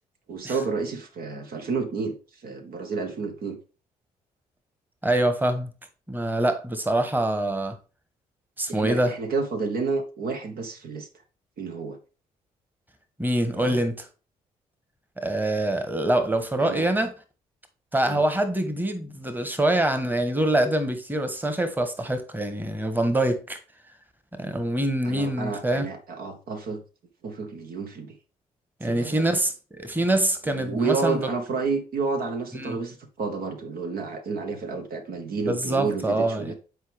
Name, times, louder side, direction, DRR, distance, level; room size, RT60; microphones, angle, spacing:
voice 1, 0.3-2.1 2.4-3.6 8.7-11.1 11.6-12.0 13.5-13.8 16.6-16.9 18.0-18.2 25.0-26.8 27.2-28.1 28.8-29.2 30.4-36.5, right 4 dB, 55° right, 1.1 m, -30 dB
voice 2, 5.0-5.7 6.1-7.7 8.6-9.1 13.2-13.9 15.2-17.1 17.9-23.6 24.4-25.9 28.8-31.3 32.5-32.8 35.4-36.5, right 1 dB, 10° right, 1.3 m, -25 dB
8.0 x 4.7 x 3.4 m
figure-of-eight pair, 45°, 19 cm